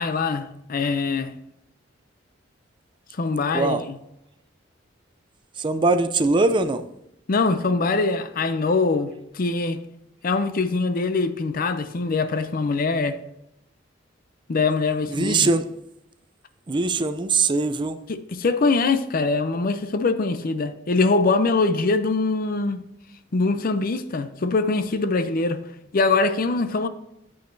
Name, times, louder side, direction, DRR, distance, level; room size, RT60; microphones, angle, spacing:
voice 1, 0.0-1.3 3.2-4.0 7.3-9.8 10.2-13.2 14.5-15.5 18.1-22.8 23.3-25.6 25.9-26.9, left 3 dB, 50° left, 0.5 m, -23 dB
voice 2, 5.6-6.8 15.1-15.6 16.7-18.0, right 3 dB, 25° right, 0.4 m, -21 dB
8.4 x 7.9 x 2.7 m
head